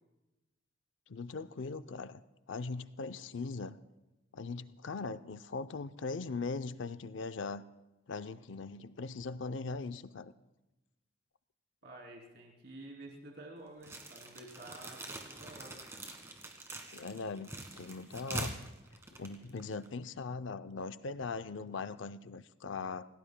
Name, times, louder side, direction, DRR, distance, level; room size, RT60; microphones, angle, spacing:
voice 1, 1.1-2.2 2.5-3.8 4.3-7.6 8.1-10.3 16.9-18.5 19.2-23.1, left 4 dB, 75° left, 13 dB, 0.5 m, -40 dB
voice 2, 11.8-15.8, right 2 dB, 55° right, -1 dB, 3.2 m, -50 dB
sound 1, 13.8-19.9, right 1 dB, 15° right, 1.6 m, -44 dB
27.0 x 18.0 x 2.2 m, 1.0 s
head